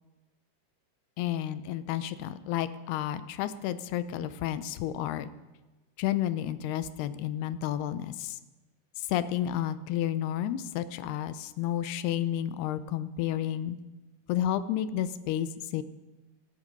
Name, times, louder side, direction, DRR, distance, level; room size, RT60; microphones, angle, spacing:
voice 1, 1.2-5.3 6.0-8.4 9.0-13.8 14.3-15.8, left 11 dB, 85° left, 13 dB, 2.8 m, -31 dB
26.0 x 10.5 x 5.3 m, 1.1 s
omnidirectional pair, 4.5 m